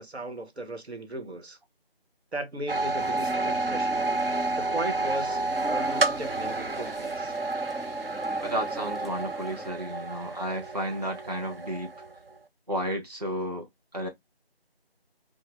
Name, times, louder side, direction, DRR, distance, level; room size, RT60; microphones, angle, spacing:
voice 1, 0.0-1.6 2.3-4.1 4.6-5.4 5.7-7.3, right 1 dB, 85° right, 1.1 m, -36 dB
sound 1, 2.7-12.3, right 3 dB, 65° right, 0.6 m, -30 dB
sound 2, 3.0-9.7, equal, ahead, 0.3 m, -41 dB
voice 2, 8.4-11.9 12.7-13.7 13.9-14.1, equal, 40° right, 0.8 m, -32 dB
5.3 x 2.1 x 2.4 m
figure-of-eight pair, 180°, 32 cm